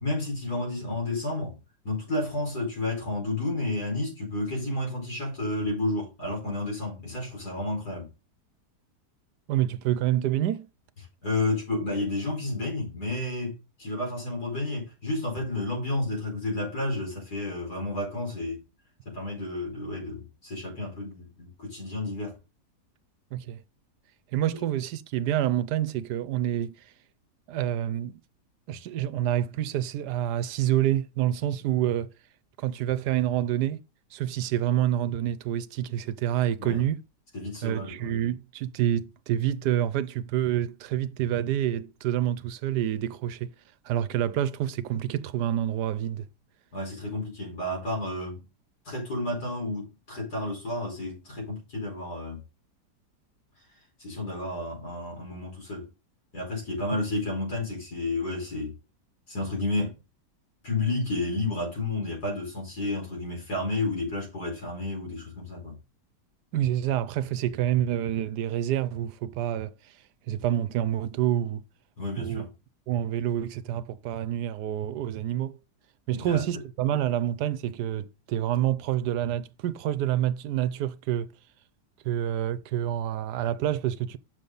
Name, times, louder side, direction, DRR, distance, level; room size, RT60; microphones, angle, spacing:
voice 1, 0.0-1.6 1.8-8.1 11.2-18.6 19.1-22.3 36.6-36.8 37.3-38.1 46.7-48.4 48.9-52.4 54.0-55.9 56.3-58.7 59.3-60.0 60.6-65.7 72.0-72.5 76.2-76.4, left 2 dB, 65° left, 5.5 m, -31 dB
voice 2, 9.5-10.7 23.3-23.6 24.3-26.8 27.5-28.2 28.7-32.1 32.6-33.8 34.1-37.0 37.6-43.5 43.8-46.3 66.5-70.0 70.3-71.6 72.2-72.5 72.9-75.6 76.1-81.3 82.0-84.2, right 11 dB, 80° right, 1.2 m, -27 dB
8.2 x 6.9 x 3.9 m
omnidirectional pair, 1.8 m